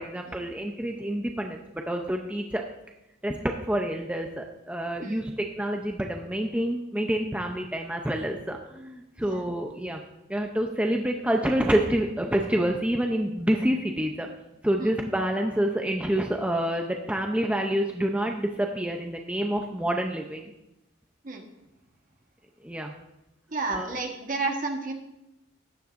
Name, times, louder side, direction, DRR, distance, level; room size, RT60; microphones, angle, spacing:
voice 1, 0.0-2.6 3.2-10.0 10.3-14.3 14.6-20.5 22.6-22.9 23.7-23.9, right 1 dB, 5° right, 2 dB, 0.6 m, -28 dB
voice 2, 23.5-24.9, right 3 dB, 45° right, 3 dB, 1.3 m, -31 dB
14.0 x 9.8 x 2.5 m, 0.92 s
head